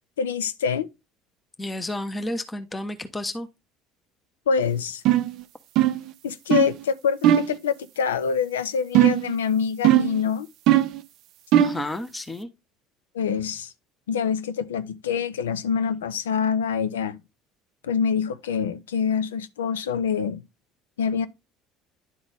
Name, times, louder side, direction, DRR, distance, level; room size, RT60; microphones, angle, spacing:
voice 1, 0.2-0.9 4.5-5.0 6.2-10.5 13.1-13.7 14.1-17.2 17.8-20.4 21.0-21.3, left 7 dB, 80° left, 0.5 m, -25 dB
voice 2, 1.6-3.5 11.6-12.5, left 1 dB, 15° left, 1.0 m, -31 dB
sound 1, 5.1-5.3 5.8-6.1 6.5-6.8 7.2-7.6 8.9-9.3 9.8-10.2 10.7-11.0 11.5-11.8, right 12 dB, 60° right, 0.5 m, -18 dB
11.0 x 3.9 x 3.4 m
hypercardioid pair, 65°, 0 cm